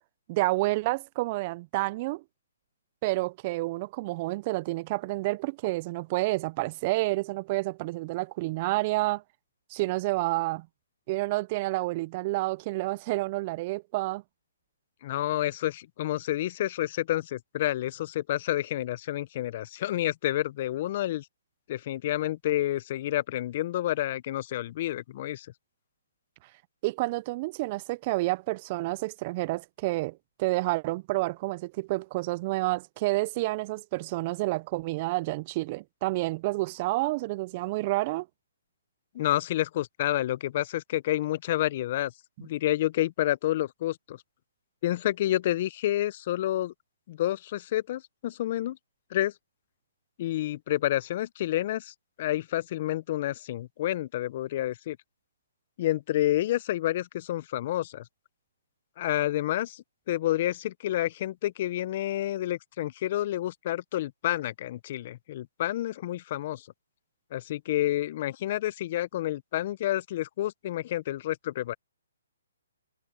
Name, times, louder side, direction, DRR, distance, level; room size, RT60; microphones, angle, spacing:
voice 1, 0.3-2.2 3.0-9.2 9.7-10.7 11.1-14.2 26.8-38.3, right 21 dB, 35° right, 0.4 m, -29 dB
voice 2, 15.0-21.2 21.7-25.5 39.1-42.1 42.4-44.2 44.8-46.7 47.1-48.8 49.1-49.3 50.2-55.0 55.8-58.0 59.0-66.6 67.3-71.7, left 14 dB, 45° left, 0.7 m, -29 dB
hypercardioid pair, 140°, 0 cm